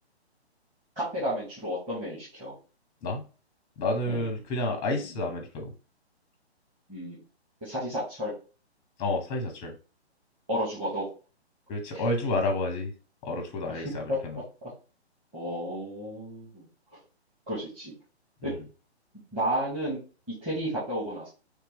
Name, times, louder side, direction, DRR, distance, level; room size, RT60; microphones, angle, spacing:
voice 1, 1.0-2.5 4.1-4.2 6.9-7.2 7.6-8.3 10.5-11.1 11.9-12.0 13.7-13.8 14.1-14.7 15.3-16.6 17.5-17.9 18.4-18.5 19.3-20.0 20.3-21.3, equal, 15° right, -10 dB, 1.9 m, -32 dB
voice 2, 3.8-5.7 9.0-9.8 11.7-12.9 13.2-14.4 18.4-18.6, left 2 dB, 15° left, 4 dB, 0.8 m, -30 dB
4.3 x 3.3 x 3.5 m, 0.35 s
hypercardioid pair, 145°, 33 cm